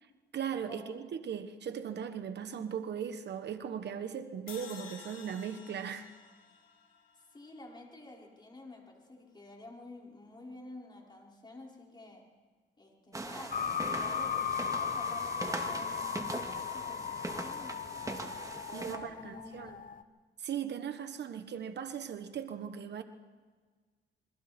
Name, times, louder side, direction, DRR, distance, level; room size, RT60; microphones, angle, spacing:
voice 1, 0.3-6.1 18.7-19.8 20.4-23.0, right 8 dB, 60° right, 9 dB, 1.2 m, -38 dB
sound 1, 4.5-7.7, left 7 dB, 90° left, 2.9 m, -52 dB
voice 2, 7.3-12.2 12.8-18.1 18.5-19.8, left 2 dB, 20° left, -2 dB, 5.0 m, -50 dB
sound 2, 13.1-19.0, right 2 dB, 15° right, 2.0 m, -41 dB
sound 3, 13.5-20.0, left 7 dB, 45° left, 1.1 m, -36 dB
28.0 x 22.5 x 4.4 m, 1.5 s
cardioid pair, 90°, 20 cm